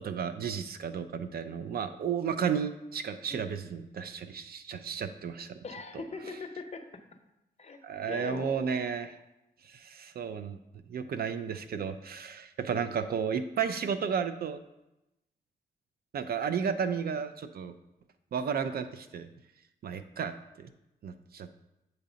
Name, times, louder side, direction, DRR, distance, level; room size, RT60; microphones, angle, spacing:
voice 1, 0.0-5.6 7.8-9.2 9.6-10.6 10.9-14.6 16.1-17.7 18.3-19.3 19.8-20.7 21.0-21.5, right 7 dB, 60° right, 10 dB, 0.4 m, -33 dB
voice 2, 5.6-7.0 7.6-7.8 8.1-8.8 16.8-16.9, left 4 dB, 40° left, 5 dB, 0.7 m, -41 dB
7.9 x 2.8 x 5.0 m, 0.91 s
wide cardioid pair, 115°, 18 cm